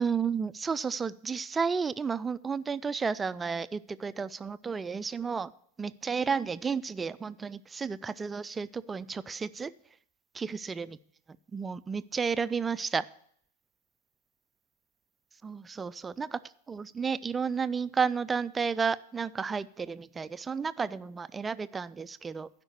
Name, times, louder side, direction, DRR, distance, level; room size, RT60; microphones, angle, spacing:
voice 1, 0.0-5.5 5.8-9.7 10.3-11.0 11.5-13.0 15.4-16.4 16.7-22.5, right 5 dB, 15° right, 16 dB, 0.3 m, -32 dB
11.5 x 5.2 x 8.2 m, 0.66 s
figure-of-eight pair, 90°, 0 cm